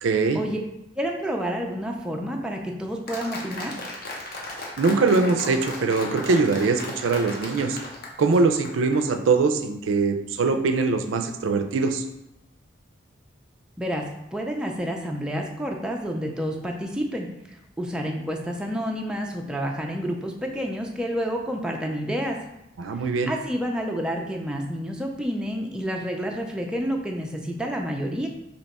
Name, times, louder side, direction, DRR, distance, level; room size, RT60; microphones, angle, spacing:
voice 1, 0.0-0.4 4.8-7.8 8.2-12.0 22.8-23.3, right 4 dB, 90° right, 7 dB, 0.4 m, -22 dB
voice 2, 1.0-3.7 13.8-14.0 14.3-22.4 23.0-28.3, equal, 5° right, 0 dB, 0.4 m, -29 dB
Applause, 3.1-9.0, left 2 dB, 50° left, 0.7 m, -36 dB
3.3 x 2.8 x 4.1 m, 0.86 s
head